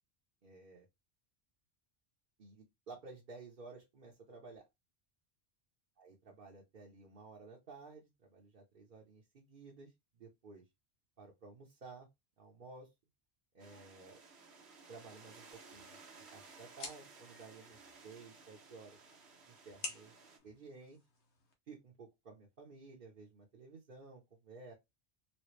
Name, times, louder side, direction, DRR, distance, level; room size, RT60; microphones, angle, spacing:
voice 1, 0.4-0.9 2.4-4.6 6.0-10.6 11.2-12.1 12.4-12.9 13.5-14.2 14.9-15.4 15.7-16.0 16.3-17.8 18.0-19.0 19.5-20.2 20.4-21.0 21.7-24.7, right 3 dB, 50° right, 1.0 m, -54 dB
sound 1, 13.6-20.4, right 4 dB, 75° right, 1.3 m, -57 dB
sound 2, 15.5-21.5, left 3 dB, 85° left, 1.3 m, -52 dB
4.2 x 2.2 x 3.1 m
omnidirectional pair, 1.1 m